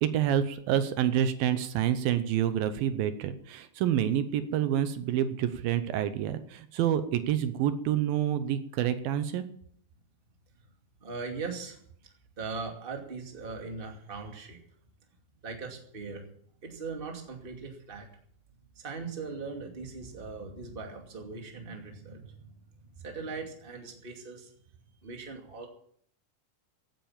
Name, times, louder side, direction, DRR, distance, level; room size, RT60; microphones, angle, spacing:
voice 1, 0.0-9.4, right 10 dB, 80° right, 11 dB, 2.6 m, -28 dB
voice 2, 11.0-11.8 12.4-14.6 15.4-16.2 16.6-18.1 18.8-22.5 22.8-24.5 25.0-25.7, right 4 dB, 20° right, 2 dB, 2.0 m, -40 dB
16.0 x 9.0 x 7.3 m, 0.63 s
omnidirectional pair, 4.3 m